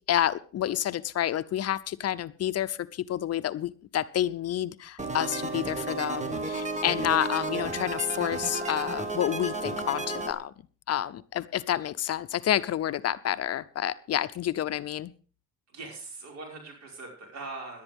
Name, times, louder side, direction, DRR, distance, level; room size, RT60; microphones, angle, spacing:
voice 1, 0.1-10.5 10.9-15.1, left 11 dB, 55° left, 14 dB, 0.6 m, -29 dB
sound 1, 5.0-10.3, right 3 dB, 25° right, 1.6 m, -33 dB
voice 2, 15.7-17.8, right 3 dB, 60° right, 1 dB, 5.5 m, -41 dB
18.0 x 11.0 x 3.6 m, 0.39 s
cardioid pair, 120°, 31 cm